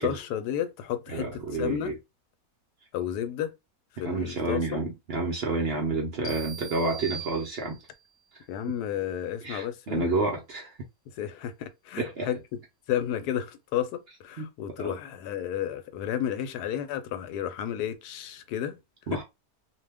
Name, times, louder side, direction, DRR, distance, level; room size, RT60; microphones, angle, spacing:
voice 1, 0.0-1.9 2.9-3.5 3.9-4.8 8.5-10.1 11.1-12.6 12.9-18.8 19.1-19.2, left 10 dB, 85° left, 1.1 m, -32 dB
voice 2, 1.1-2.0 4.0-7.8 9.4-10.7 12.0-12.3 14.4-14.5 14.8-15.0 19.1-19.2, right 3 dB, 60° right, 0.7 m, -29 dB
sound 1, 6.2-8.1, right 5 dB, 45° left, 1.0 m, -40 dB
2.6 x 2.2 x 3.3 m
omnidirectional pair, 1.6 m